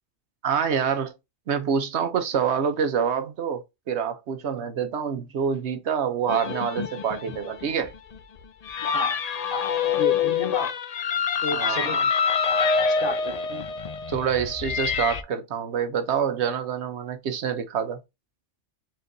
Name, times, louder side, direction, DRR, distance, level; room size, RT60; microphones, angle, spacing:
voice 1, 0.4-1.1 1.5-7.9 11.5-12.1 14.1-18.0, right 7 dB, 70° right, 1.0 m, -26 dB
sound 1, 6.3-15.2, left 6 dB, 90° left, 0.3 m, -26 dB
voice 2, 9.5-10.7 11.4-11.9 12.9-13.6, left 3 dB, 55° left, 1.2 m, -32 dB
4.4 x 3.3 x 2.6 m
omnidirectional pair, 1.2 m